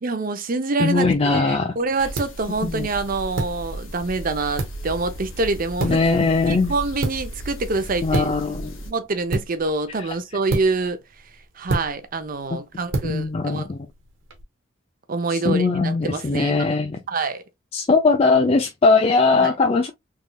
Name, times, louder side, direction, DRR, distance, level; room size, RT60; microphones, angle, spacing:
voice 1, 0.0-6.0 6.5-8.3 8.9-11.0 11.6-13.7 15.1-16.7 17.1-17.4 19.3-19.5, right 3 dB, 45° right, 0.6 m, -26 dB
voice 2, 0.8-1.7 2.6-2.9 5.8-6.7 8.0-8.7 13.0-13.9 15.3-17.0 17.7-19.9, left 3 dB, 30° left, 0.4 m, -20 dB
sound 1, 0.9-14.4, right 2 dB, 80° right, 1.2 m, -32 dB
sound 2, 2.0-8.9, right 1 dB, 80° left, 1.3 m, -36 dB
3.6 x 3.1 x 2.2 m
head